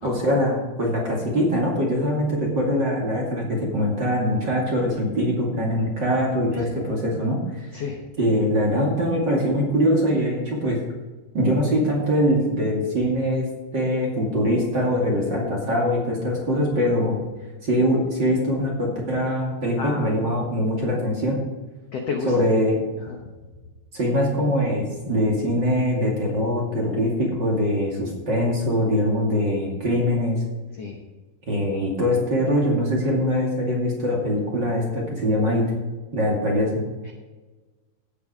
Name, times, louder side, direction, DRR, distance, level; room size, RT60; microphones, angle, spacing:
voice 1, 0.0-7.7 8.2-10.8 11.3-13.4 13.7-17.2 17.6-21.4 22.3-22.8 23.9-30.4 31.5-35.7 36.1-36.8, equal, 35° right, -2 dB, 2.4 m, -22 dB
voice 2, 19.8-20.1 21.9-22.3 22.6-22.7 23.0-23.2 30.8-31.0 37.0-37.1, left 5 dB, 75° left, 1 dB, 1.4 m, -31 dB
16.0 x 7.5 x 5.0 m, 1.2 s
omnidirectional pair, 4.6 m